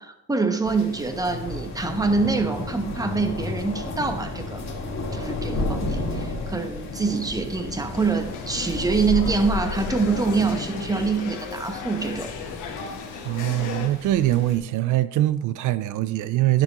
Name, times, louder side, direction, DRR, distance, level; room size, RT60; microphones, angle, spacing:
voice 1, 0.0-4.6 5.1-12.3, right 4 dB, 10° right, 1.0 m, -25 dB
sound 1, 0.6-14.6, left 2 dB, 60° left, 2.3 m, -32 dB
sound 2, 7.9-13.9, left 5 dB, 85° left, 1.2 m, -35 dB
voice 2, 13.2-16.6, right 15 dB, 85° right, 0.4 m, -23 dB
10.5 x 6.9 x 2.9 m
cardioid pair, 90°, 30 cm